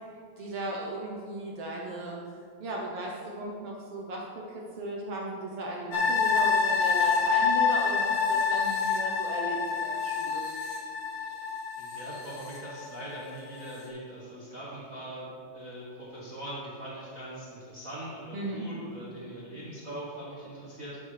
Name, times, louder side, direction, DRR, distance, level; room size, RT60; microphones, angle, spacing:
voice 1, 0.4-2.2 2.6-10.4 18.3-18.6, right 1 dB, 65° right, -2 dB, 1.5 m, -36 dB
sound 1, 5.9-13.2 13.6-13.7, left 5 dB, 80° left, 3.4 m, -27 dB
voice 2, 11.2-15.3 15.5-21.0, right 1 dB, 40° right, -7 dB, 1.3 m, -41 dB
12.0 x 8.7 x 3.3 m, 2.3 s
omnidirectional pair, 3.6 m